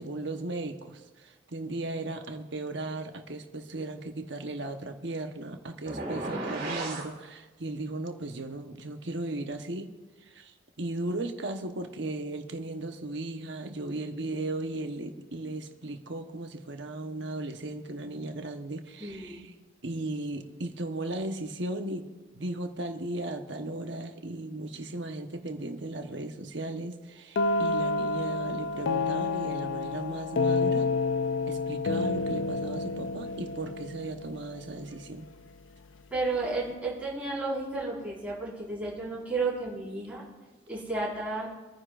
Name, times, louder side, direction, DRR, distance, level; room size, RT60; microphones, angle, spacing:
voice 1, 0.0-9.9 10.2-19.4 19.8-22.1 22.3-30.9 31.5-35.3, right 2 dB, 75° right, 5 dB, 1.1 m, -36 dB
sound 1, 5.9-7.1, right 2 dB, 55° right, 3.4 m, -34 dB
voice 2, 19.0-19.4 36.1-40.2 40.7-41.5, right 3 dB, 10° right, -7 dB, 4.7 m, -32 dB
sound 2, 27.4-35.1, left 3 dB, 85° left, 0.4 m, -29 dB
26.0 x 9.8 x 2.5 m, 1.2 s
head